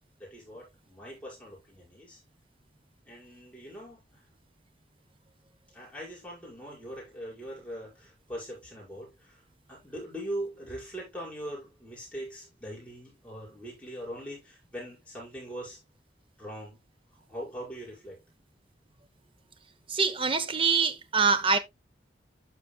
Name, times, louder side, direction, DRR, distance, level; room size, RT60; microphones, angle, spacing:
voice 1, 0.2-2.2 3.1-4.2 5.7-9.4 9.7-15.8 16.4-16.8 17.3-18.2, right 1 dB, 5° left, 5.7 m, -41 dB
voice 2, 19.9-21.6, right 5 dB, 30° right, 0.9 m, -24 dB
12.0 x 6.1 x 2.3 m
head